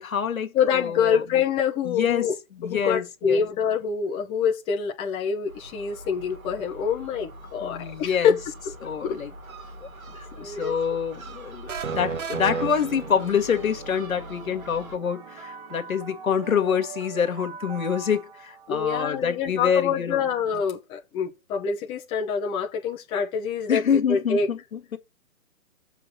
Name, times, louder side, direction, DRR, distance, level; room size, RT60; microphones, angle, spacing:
voice 1, 0.0-1.2 1.8-2.3 2.6-3.4 7.6-8.4 8.8-9.3 9.8-20.2 23.7-25.0, left 7 dB, 75° left, 1.8 m, -26 dB
voice 2, 0.5-2.3 2.6-8.4 9.0-9.2 10.3-10.8 18.7-23.8 24.1-24.5, left 7 dB, 15° left, 1.0 m, -26 dB
Gull seagull, 5.5-15.0, right 1 dB, 75° right, 3.0 m, -43 dB
sound 1, 11.7-13.7, right 5 dB, 60° right, 2.1 m, -31 dB
sound 2, 12.4-19.4, right 6 dB, 20° right, 1.2 m, -43 dB
7.6 x 5.5 x 4.1 m
hypercardioid pair, 145°, 42 cm